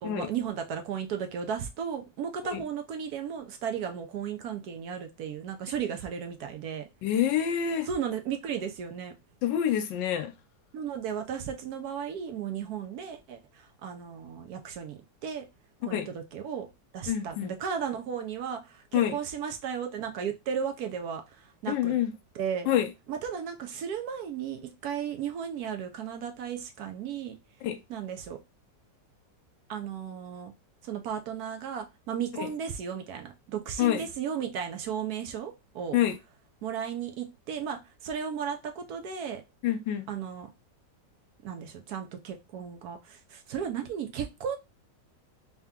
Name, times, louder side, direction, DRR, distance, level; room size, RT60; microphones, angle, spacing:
voice 1, 0.0-6.9 7.9-9.1 10.7-15.4 15.8-16.7 16.9-21.9 22.3-22.7 23.1-27.4 27.9-28.4 29.7-30.5 30.8-36.0 36.6-39.4 40.1-40.5 41.4-44.6, right 7 dB, 65° right, 1.0 m, -35 dB
voice 2, 7.0-7.9 9.4-10.3 15.9-16.1 17.1-17.5 18.9-19.2 21.7-22.1 22.7-22.9 27.6-27.8 32.4-32.5 33.8-34.0 35.9-36.2 39.6-40.1, left 10 dB, 80° left, 1.3 m, -27 dB
3.4 x 2.8 x 3.5 m
omnidirectional pair, 2.0 m